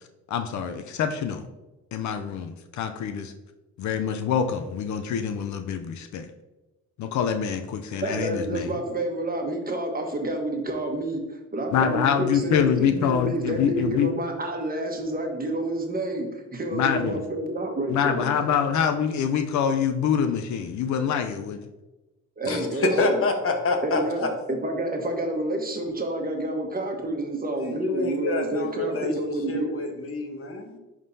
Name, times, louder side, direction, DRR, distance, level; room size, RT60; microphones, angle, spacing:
voice 1, 0.3-1.4 1.9-3.3 3.8-6.3 7.0-8.7 11.7-14.1 16.7-17.2 17.9-21.6, left 8 dB, 70° left, 7 dB, 0.6 m, -25 dB
voice 2, 7.9-18.4 22.4-23.2 23.8-29.7, right 1 dB, 30° right, 3 dB, 1.2 m, -29 dB
voice 3, 22.4-24.3 27.6-30.8, left 3 dB, 45° left, 4 dB, 1.2 m, -27 dB
10.5 x 3.7 x 2.7 m, 1.1 s
cardioid pair, 90°, 30 cm